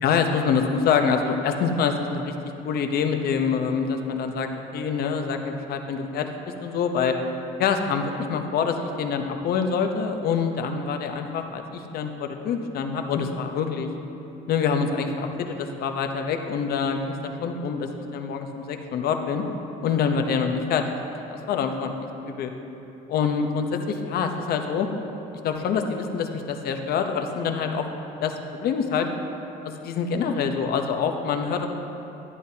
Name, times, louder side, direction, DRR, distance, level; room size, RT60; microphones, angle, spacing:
voice 1, 0.0-2.3 2.6-6.3 6.6-7.2 7.6-13.9 14.5-19.4 19.8-20.9 21.3-21.9 22.2-22.5 23.1-24.9 25.4-27.9 28.2-29.1 29.6-31.7, left 6 dB, 65° left, 5 dB, 0.8 m, -26 dB
11.5 x 11.0 x 2.8 m, 3.0 s
cardioid pair, 110°, 17 cm